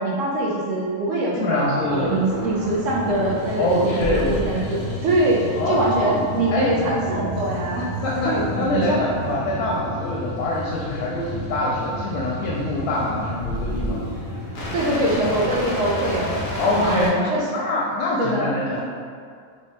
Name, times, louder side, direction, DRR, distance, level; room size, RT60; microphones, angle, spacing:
voice 1, 0.0-3.8 4.1-5.4 5.7-7.9 8.3-9.0 14.7-16.5 16.8-17.4 18.2-18.5, right 2 dB, 65° right, -3 dB, 0.9 m, -23 dB
voice 2, 1.3-2.2 3.6-4.7 5.6-6.2 6.5-6.7 8.0-14.1 16.6-18.8, left 1 dB, 80° left, -4 dB, 1.1 m, -24 dB
sound 1, 1.8-17.1, equal, 50° left, 0.6 m, -31 dB
3.2 x 2.8 x 3.2 m, 2.2 s
omnidirectional pair, 1.6 m